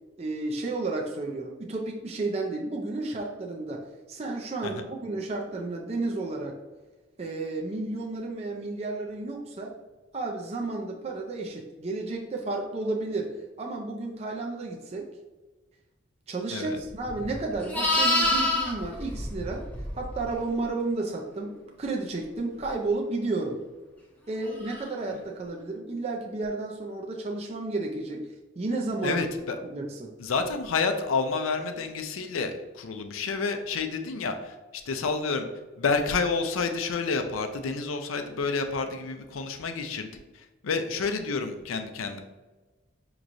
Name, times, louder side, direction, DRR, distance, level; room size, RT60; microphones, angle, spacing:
voice 1, 0.2-6.6 7.2-9.8 10.1-15.1 16.3-19.7 20.0-23.6 24.3-28.2 28.6-29.2 29.6-30.1, right 3 dB, 30° right, 0 dB, 0.4 m, -32 dB
Livestock farm animals working animals, 17.0-20.3 24.6-24.9, left 1 dB, 10° left, 0.7 m, -27 dB
voice 2, 29.0-29.6 30.2-34.6 34.9-35.5 35.8-42.2, left 4 dB, 90° left, 7 dB, 0.5 m, -29 dB
6.1 x 3.0 x 2.6 m, 1.2 s
head